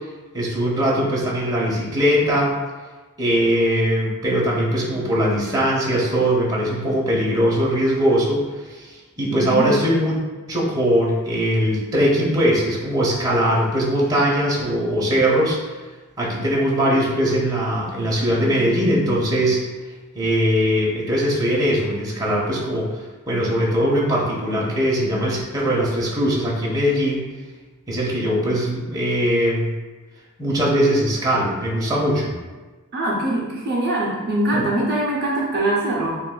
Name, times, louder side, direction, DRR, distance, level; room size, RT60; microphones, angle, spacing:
voice 1, 0.3-2.5 3.2-8.4 8.7-10.2 10.5-15.8 16.2-19.6 20.1-23.0 23.3-27.3 27.9-29.7 30.4-32.3 34.5-34.6, equal, 15° right, -5 dB, 0.8 m, -20 dB
voice 2, 9.3-9.6 32.9-36.2, right 1 dB, 45° right, -3 dB, 0.6 m, -22 dB
7.1 x 2.4 x 2.3 m, 1.3 s
head